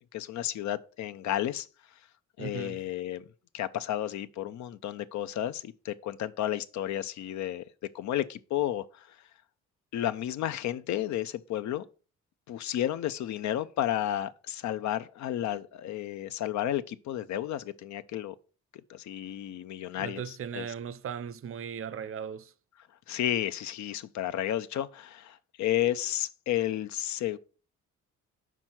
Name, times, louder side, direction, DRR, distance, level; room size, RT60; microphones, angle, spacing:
voice 1, 0.1-1.7 2.4-3.3 3.5-7.6 7.9-9.2 9.9-11.9 12.5-18.4 18.9-20.7 23.1-27.4, left 12 dB, 70° left, 0.5 m, -32 dB
voice 2, 2.4-2.8 20.0-22.5, right 7 dB, 45° right, 0.6 m, -38 dB
6.1 x 4.4 x 5.8 m
cardioid pair, 90°, 30 cm